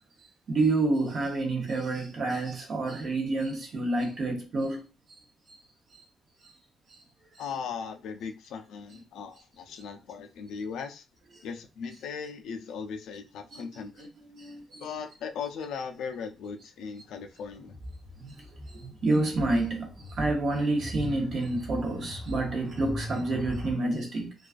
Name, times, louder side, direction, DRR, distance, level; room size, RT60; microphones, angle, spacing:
voice 1, 0.2-4.8 5.1-5.2 5.5-5.6 5.9-6.0 6.4-6.6 6.9-7.0 8.9-9.0 9.7-9.8 11.3-11.4 13.5-14.9 18.2-24.3, right 2 dB, 45° right, 0.7 m, -29 dB
voice 2, 7.4-11.0 11.4-14.1 14.8-17.7, left 6 dB, 85° left, 0.4 m, -38 dB
sound 1, 17.6-23.7, left 1 dB, 5° right, 0.8 m, -40 dB
2.3 x 2.3 x 2.4 m
cardioid pair, 170°, 0 cm